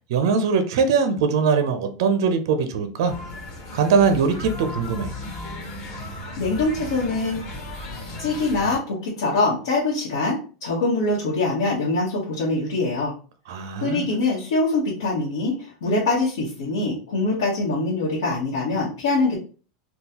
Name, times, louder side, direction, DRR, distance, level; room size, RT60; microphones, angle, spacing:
voice 1, 0.1-3.2 3.7-5.1 13.5-14.1, right 5 dB, 75° right, 0.5 m, -21 dB
sound 1, 3.1-8.8, left 2 dB, 45° left, 1.3 m, -35 dB
voice 2, 6.4-7.5 8.2-13.1 13.8-19.4, left 2 dB, 85° left, 1.1 m, -24 dB
3.6 x 2.3 x 2.8 m
supercardioid pair, 130°, 2 cm